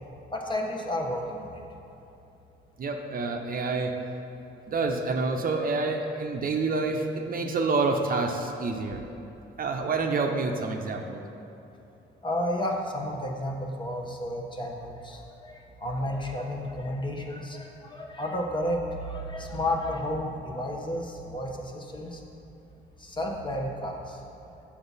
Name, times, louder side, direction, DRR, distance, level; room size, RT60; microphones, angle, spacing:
voice 1, 0.3-1.6 12.2-22.2 23.0-24.5, left 1 dB, 25° left, 0 dB, 1.0 m, -32 dB
voice 2, 2.8-3.9 4.7-9.0 9.6-11.2, right 3 dB, 45° right, 3 dB, 0.7 m, -28 dB
7.7 x 6.0 x 4.0 m, 2.9 s
cardioid pair, 90°, 20 cm